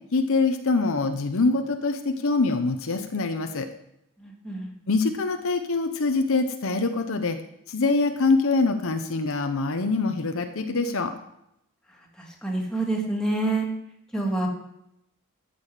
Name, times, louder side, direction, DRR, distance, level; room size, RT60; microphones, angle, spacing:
voice 1, 0.1-3.7 4.9-7.4 7.7-11.1, left 3 dB, 65° left, 7 dB, 0.8 m, -24 dB
voice 2, 4.2-4.7 12.2-13.7 14.1-14.5, right 2 dB, 5° left, -2 dB, 2.1 m, -27 dB
13.0 x 7.0 x 4.9 m, 0.79 s
head